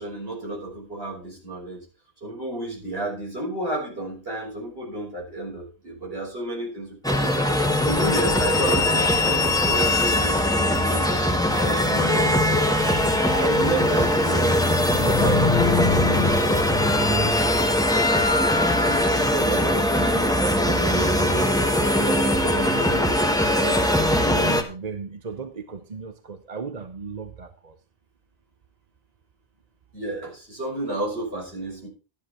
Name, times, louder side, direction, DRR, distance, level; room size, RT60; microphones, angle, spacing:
voice 1, 0.0-1.8 2.2-13.0 13.5-14.4 29.9-31.9, right 1 dB, 60° right, 5.7 m, -32 dB
sound 1, 7.0-24.6, left 1 dB, 5° left, 1.3 m, -21 dB
sound 2, 13.0-16.7, left 6 dB, 40° left, 1.1 m, -28 dB
voice 2, 13.3-14.7 15.0-16.3 16.8-17.6 18.9-21.6 21.9-23.1 23.6-27.8, right 5 dB, 40° right, 0.9 m, -33 dB
12.5 x 10.5 x 4.4 m
omnidirectional pair, 1.1 m